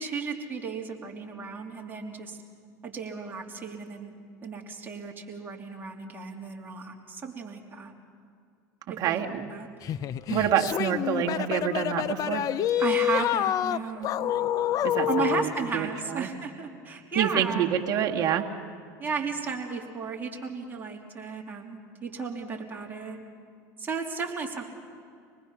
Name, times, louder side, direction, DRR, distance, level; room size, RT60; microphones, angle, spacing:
voice 1, 0.0-2.4 2.8-4.1 4.4-7.9 8.9-9.7 12.8-14.3 15.1-17.7 19.0-23.2 23.8-24.6, right 5 dB, 20° right, 0 dB, 3.2 m, -34 dB
voice 2, 9.0-9.5 10.3-12.4 14.8-16.3 17.2-18.5, right 9 dB, 45° right, 2 dB, 1.8 m, -27 dB
sound 1, 9.8-15.5, left 11 dB, 45° left, 0.6 m, -27 dB
25.5 x 19.5 x 5.9 m, 2.4 s
supercardioid pair, 100°, 9 cm